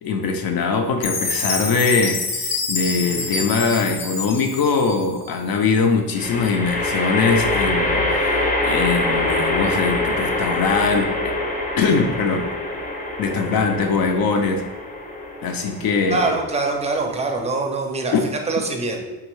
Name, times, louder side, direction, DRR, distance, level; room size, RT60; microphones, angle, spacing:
voice 1, 0.0-11.4 11.8-12.5 13.2-14.6 15.4-16.4 18.1-18.2, left 4 dB, 60° left, 4 dB, 0.5 m, -22 dB
Chime, 1.0-5.3, left 3 dB, 85° left, 0.9 m, -27 dB
sound 1, 3.0-3.6 6.1-17.5, left 2 dB, 20° left, 0.7 m, -25 dB
voice 2, 16.1-18.1 18.5-19.0, right 3 dB, 15° right, 2 dB, 0.5 m, -23 dB
3.5 x 2.5 x 3.0 m, 1.1 s
cardioid pair, 90°, 40 cm